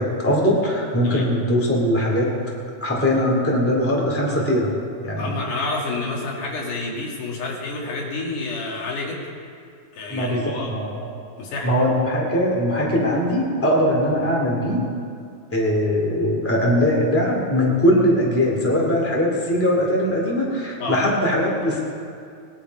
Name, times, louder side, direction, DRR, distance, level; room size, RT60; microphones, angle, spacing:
voice 1, 0.0-2.3 2.8-4.7 5.0-5.3 10.1-11.1 11.6-14.9 15.5-21.8, equal, 5° left, -2 dB, 1.9 m, -21 dB
voice 2, 5.2-9.3 9.9-10.7 11.4-11.7 20.8-21.0, left 3 dB, 85° left, -1 dB, 3.5 m, -29 dB
20.0 x 10.5 x 4.7 m, 2.4 s
omnidirectional pair, 3.6 m